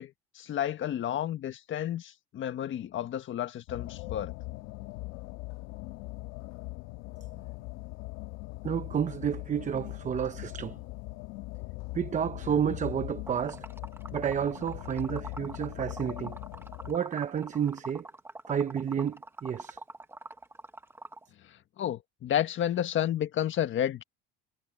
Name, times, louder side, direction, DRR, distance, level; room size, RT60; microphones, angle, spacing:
voice 1, 0.0-4.3 12.7-12.8 21.4-24.0, left 10 dB, 40° left, 1.6 m, -31 dB
sound 1, 3.7-17.0, left 21 dB, 80° left, 2.6 m, -41 dB
voice 2, 8.6-10.8 11.9-13.7 14.1-16.4 16.9-18.1 18.5-19.8, right 8 dB, 25° right, 0.8 m, -30 dB
Liquid, 13.3-21.2, right 2 dB, 10° right, 1.3 m, -44 dB
cardioid pair, 140°, 30 cm